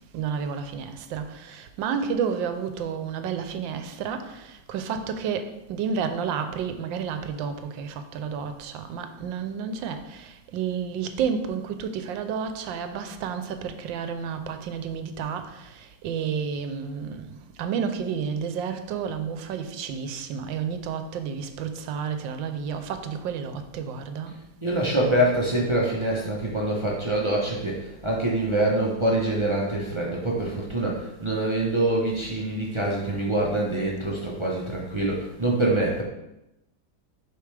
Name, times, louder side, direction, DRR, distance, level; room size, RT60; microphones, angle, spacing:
voice 1, 0.1-17.3 17.6-24.4, right 6 dB, 80° right, 8 dB, 1.3 m, -31 dB
voice 2, 24.6-36.0, right 1 dB, 40° right, -4 dB, 0.4 m, -25 dB
6.8 x 5.1 x 3.3 m, 0.89 s
omnidirectional pair, 2.1 m